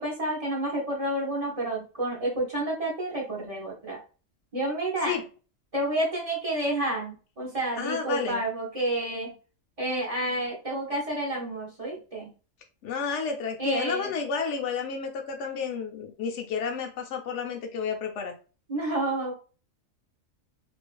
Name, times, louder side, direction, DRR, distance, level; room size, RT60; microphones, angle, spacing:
voice 1, 0.0-4.0 4.5-5.1 5.7-9.3 9.8-12.3 13.6-14.1 18.7-19.3, right 1 dB, 40° right, -2 dB, 0.6 m, -29 dB
voice 2, 7.8-8.4 12.8-18.3, left 6 dB, 70° left, 3 dB, 0.9 m, -31 dB
2.4 x 2.3 x 2.2 m, 0.35 s
omnidirectional pair, 1.3 m